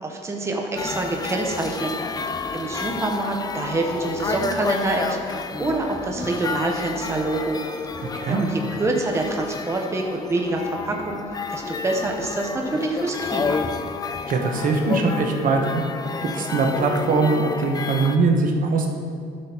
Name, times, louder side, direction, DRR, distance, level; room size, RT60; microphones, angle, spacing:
voice 1, 0.0-1.9 2.5-7.6 8.3-11.2 11.5-13.6, right 2 dB, 15° right, 1 dB, 0.8 m, -26 dB
sound 1, 0.8-18.2, left 5 dB, 25° left, 0.4 m, -30 dB
voice 2, 8.0-8.5 14.3-15.8 16.2-18.9, right 3 dB, 55° right, 2 dB, 1.0 m, -21 dB
12.0 x 6.0 x 2.9 m, 2.2 s
cardioid pair, 110°, 17 cm